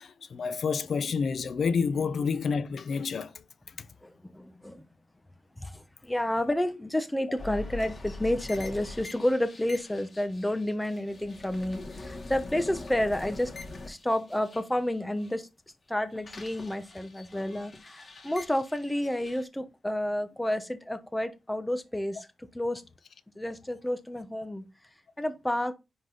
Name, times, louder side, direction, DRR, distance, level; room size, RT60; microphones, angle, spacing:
voice 1, 0.0-3.3 3.8-3.9, left 5 dB, 70° left, 0.7 m, -29 dB
voice 2, 4.0-4.8 5.6-13.5 13.8-15.5 15.9-22.3 22.5-22.8 23.4-24.7 25.2-25.7, left 1 dB, 10° left, 1.0 m, -30 dB
sound 1, 7.4-15.3 15.7-19.4, left 2 dB, 45° left, 2.1 m, -43 dB
10.0 x 4.0 x 3.9 m
wide cardioid pair, 110°, 0 cm